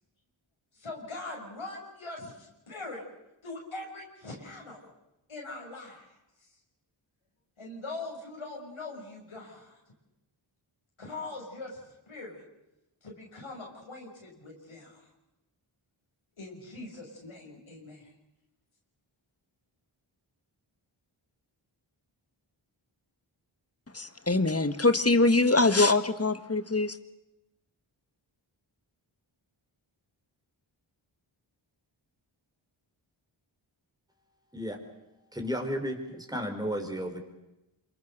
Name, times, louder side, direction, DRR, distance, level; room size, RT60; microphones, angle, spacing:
voice 1, 0.7-3.0 3.4-4.9 5.3-6.1 7.6-9.8 11.0-11.8 12.1-12.4 13.0-15.0 16.4-18.1, left 2 dB, 80° left, -2 dB, 6.2 m, -42 dB
voice 2, 23.9-27.0, left 2 dB, 30° left, 11 dB, 1.7 m, -23 dB
voice 3, 35.3-37.2, equal, 10° right, 3 dB, 4.8 m, -33 dB
26.5 x 23.5 x 6.8 m, 0.93 s
cardioid pair, 40°, 49 cm